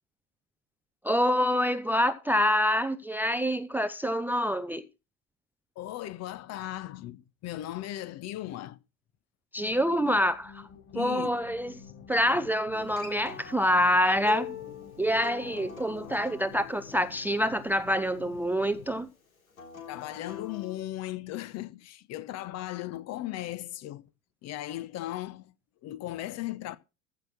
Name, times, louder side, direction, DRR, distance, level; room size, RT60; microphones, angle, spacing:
voice 1, 1.0-4.9 9.5-10.7 10.9-11.7 12.1-14.6 15.0-19.1, equal, 5° right, 0.6 m, -26 dB
voice 2, 5.8-8.8 10.9-11.3 19.9-24.1 24.4-25.5 25.8-26.8, left 14 dB, 40° left, 1.0 m, -37 dB
sound 1, 9.6-19.1, left 6 dB, 60° left, 6.3 m, -50 dB
Acoustic guitar, 12.7-17.9 19.5-20.8, left 8 dB, 75° left, 3.3 m, -43 dB
14.5 x 6.0 x 6.2 m
figure-of-eight pair, 75°, 41 cm